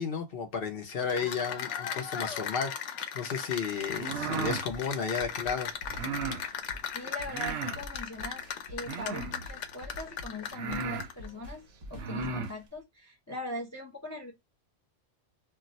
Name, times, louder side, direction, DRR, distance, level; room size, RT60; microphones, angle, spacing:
voice 1, 0.0-5.7, left 6 dB, 60° left, 0.8 m, -33 dB
Cheering / Applause, 0.9-11.3, left 8 dB, 90° left, 0.9 m, -37 dB
sound 1, 3.9-4.7 5.9-6.4 7.3-7.8 8.8-9.4 10.1-10.2 10.5-11.1 11.9-12.5, right 5 dB, 70° right, 0.8 m, -35 dB
sound 2, 4.5-12.7, equal, 40° right, 0.8 m, -48 dB
voice 2, 6.9-14.3, left 2 dB, 20° left, 0.5 m, -41 dB
2.3 x 2.2 x 3.9 m
omnidirectional pair, 1.2 m